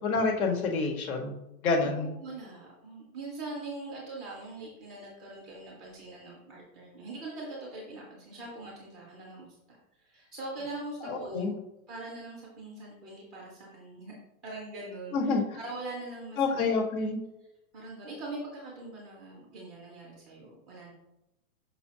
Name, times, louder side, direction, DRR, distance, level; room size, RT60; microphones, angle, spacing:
voice 1, 0.0-1.3 1.6-2.1 11.0-11.5 15.1-15.6 16.4-17.2, left 4 dB, 75° left, 3 dB, 1.7 m, -28 dB
voice 2, 1.8-11.5 11.9-14.2 14.4-16.6 17.7-20.9, right 2 dB, ahead, -3 dB, 0.3 m, -42 dB
6.2 x 6.1 x 2.8 m, 0.91 s
supercardioid pair, 160°, 43 cm